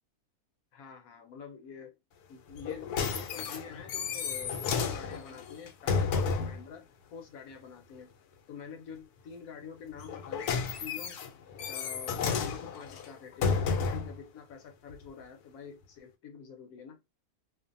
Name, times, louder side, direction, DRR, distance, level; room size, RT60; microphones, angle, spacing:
voice 1, 0.7-2.0 2.3-8.1 8.5-11.2 11.7-17.0, left 6 dB, 75° left, 1.1 m, -47 dB
sound 1, 2.6-6.6 10.0-14.2 14.9-15.0, left 5 dB, 90° left, 1.1 m, -32 dB
2.6 x 2.4 x 2.5 m
omnidirectional pair, 1.6 m